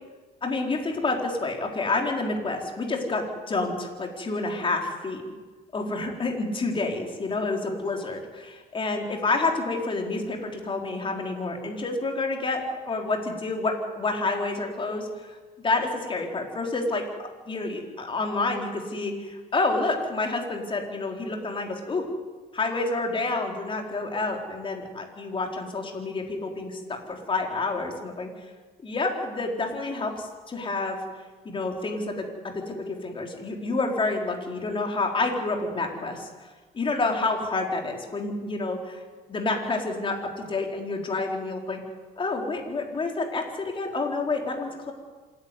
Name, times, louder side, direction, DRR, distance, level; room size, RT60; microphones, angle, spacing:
voice 1, 0.4-5.2 5.7-12.6 12.9-15.4 15.6-17.0 17.5-22.1 22.5-26.8 27.1-28.5 28.8-31.0 31.4-32.2 32.7-36.5 36.7-39.0 39.3-41.8 42.2-44.9, left 3 dB, 30° left, 2 dB, 4.1 m, -28 dB
26.5 x 11.0 x 9.9 m, 1.4 s
cardioid pair, 110°, 17 cm